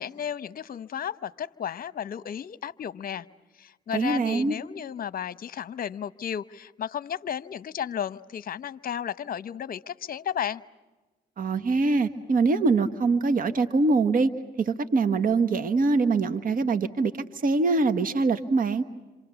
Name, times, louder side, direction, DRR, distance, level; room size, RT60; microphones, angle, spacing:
voice 1, 0.0-3.3 3.6-10.6, left 9 dB, 50° left, 17 dB, 0.9 m, -33 dB
voice 2, 3.9-4.5 11.4-14.3 14.6-17.1 17.4-18.8, right 3 dB, 50° right, 11 dB, 1.4 m, -23 dB
28.0 x 27.0 x 7.0 m, 1.2 s
cardioid pair, 85°, 19 cm